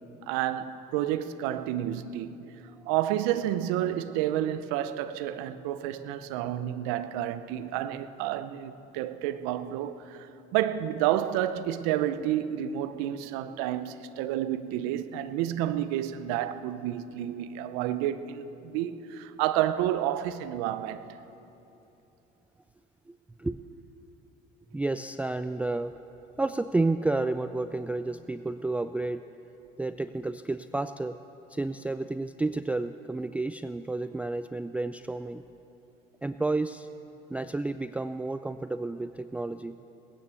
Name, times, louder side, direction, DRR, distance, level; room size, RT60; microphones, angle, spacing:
voice 1, 0.3-2.4 2.9-21.2, right 12 dB, 80° right, 0.6 m, -30 dB
voice 2, 23.1-23.6 24.7-26.0 26.4-29.2 29.8-31.2 31.5-35.4 36.2-36.9 37.3-39.8, right 2 dB, 5° right, 0.3 m, -31 dB
18.0 x 9.7 x 6.9 m
supercardioid pair, 80°, 19 cm